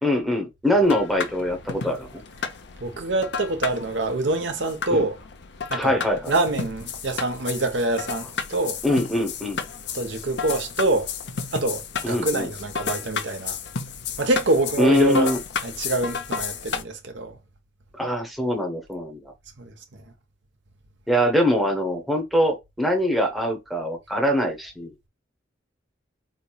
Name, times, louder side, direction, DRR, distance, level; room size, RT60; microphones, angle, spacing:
voice 1, 0.0-2.2 4.9-5.1 5.7-6.3 8.8-9.6 12.0-12.5 14.8-15.4 18.0-19.3 21.1-24.9, left 1 dB, ahead, 0.8 m, -23 dB
sound 1, 0.8-16.8, left 6 dB, 60° left, 0.6 m, -33 dB
voice 2, 2.8-5.2 5.7-6.0 6.3-8.8 9.9-11.1 11.5-13.6 14.2-15.3 15.6-17.4 19.6-19.7, right 2 dB, 70° right, 0.9 m, -25 dB
4.0 x 3.0 x 2.3 m
head